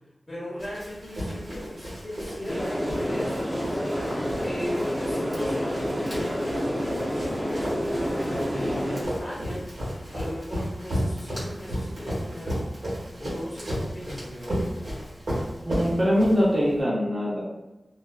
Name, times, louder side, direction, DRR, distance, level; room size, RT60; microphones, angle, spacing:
voice 1, 0.3-3.8 4.4-9.7 10.1-12.7 13.2-14.6, left 1 dB, 35° left, -7 dB, 0.7 m, -38 dB
Run, 0.6-16.8, equal, 75° right, 1.2 m, -33 dB
sound 1, 2.5-9.0, equal, 5° right, 0.6 m, -28 dB
voice 2, 15.7-17.4, equal, 40° right, -6 dB, 0.7 m, -22 dB
2.5 x 2.2 x 2.3 m, 1.0 s
wide cardioid pair, 75°, 0 cm